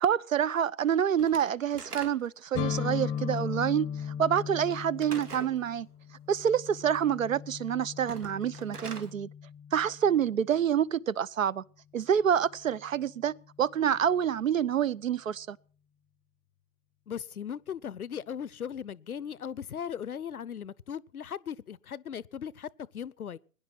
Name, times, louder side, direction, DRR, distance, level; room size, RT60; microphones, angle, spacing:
voice 1, 0.0-3.9 4.2-5.9 6.3-9.3 9.7-11.6 11.9-15.6, right 8 dB, 60° right, 0.7 m, -27 dB
Slam / Wood, 1.2-2.5 5.0-5.6 8.0-9.1, right 4 dB, 75° right, 2.4 m, -43 dB
sound 1, 2.5-10.3, left 8 dB, 10° left, 0.8 m, -37 dB
voice 2, 17.1-23.4, left 8 dB, 70° left, 0.8 m, -38 dB
21.0 x 10.5 x 6.0 m
figure-of-eight pair, 125°, 46 cm